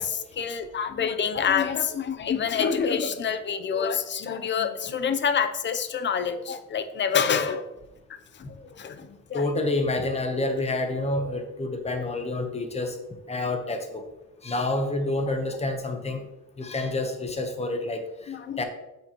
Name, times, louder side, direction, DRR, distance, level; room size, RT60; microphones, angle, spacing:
voice 1, 0.0-7.6 8.1-9.5 18.3-18.6, left 7 dB, 40° left, 10 dB, 0.5 m, -27 dB
voice 2, 9.3-13.0 13.3-14.0 14.4-16.2 16.6-18.6, left 2 dB, 20° left, 6 dB, 0.9 m, -28 dB
9.0 x 6.4 x 3.0 m, 0.98 s
cardioid pair, 160°, 30 cm